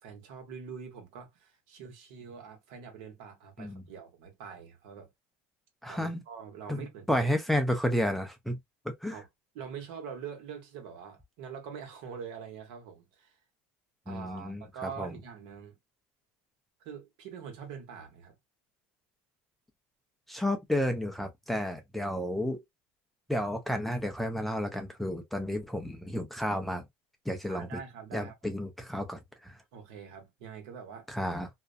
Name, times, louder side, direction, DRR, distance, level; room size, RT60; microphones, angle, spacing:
voice 1, 0.0-5.1 5.9-7.3 9.1-9.3 9.5-13.4 14.1-15.8 16.8-18.3 27.5-28.5 29.7-31.1, right 7 dB, 70° right, 1.1 m, -44 dB
voice 2, 5.8-6.2 6.7-6.8 7.1-8.6 8.9-9.2 14.1-15.1 20.3-22.6 23.3-26.9 27.3-27.8 28.1-29.6 31.1-31.5, left 1 dB, ahead, 0.4 m, -31 dB
2.4 x 2.1 x 2.4 m
supercardioid pair, 140°, 6 cm